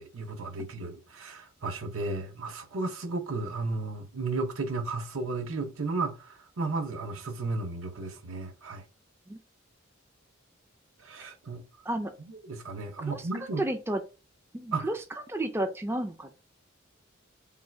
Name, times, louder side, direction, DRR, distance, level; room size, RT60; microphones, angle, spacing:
voice 1, 0.0-8.8 11.0-11.6 12.2-13.6 14.7-14.9, right 3 dB, 80° right, 0.8 m, -34 dB
voice 2, 13.6-14.0 14.5-15.0 15.3-16.4, right 1 dB, 10° right, 0.4 m, -31 dB
3.6 x 2.3 x 4.3 m
head